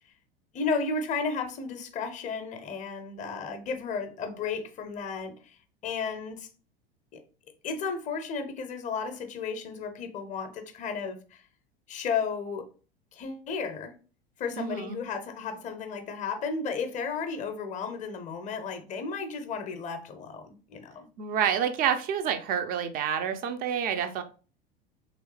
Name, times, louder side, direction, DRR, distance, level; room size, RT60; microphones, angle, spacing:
voice 1, 0.5-6.5 7.1-7.2 7.6-11.4 11.9-12.7 13.1-13.9 14.4-21.1, left 5 dB, 25° left, 0.6 m, -33 dB
voice 2, 14.6-15.0 21.2-24.2, right 8 dB, 30° right, 0.5 m, -28 dB
3.3 x 3.0 x 3.1 m
figure-of-eight pair, 80°, 29 cm